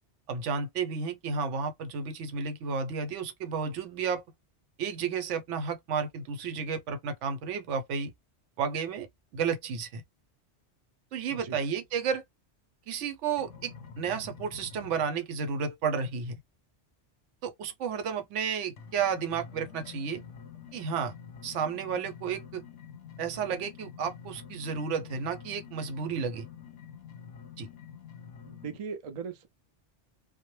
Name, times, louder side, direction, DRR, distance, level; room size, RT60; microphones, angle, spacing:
voice 1, 0.3-4.2 4.8-8.1 8.6-9.1 9.3-10.0 11.1-12.2 12.9-16.4 17.4-20.2 20.7-21.1 21.4-22.6 23.2-26.5 27.6-27.7, right 6 dB, 90° right, 0.9 m, -32 dB
sound 1, 13.4-15.2 18.8-28.8, left 7 dB, 85° left, 0.9 m, -47 dB
voice 2, 28.5-29.5, right 5 dB, 55° right, 0.4 m, -39 dB
2.1 x 2.0 x 3.0 m
omnidirectional pair, 1.2 m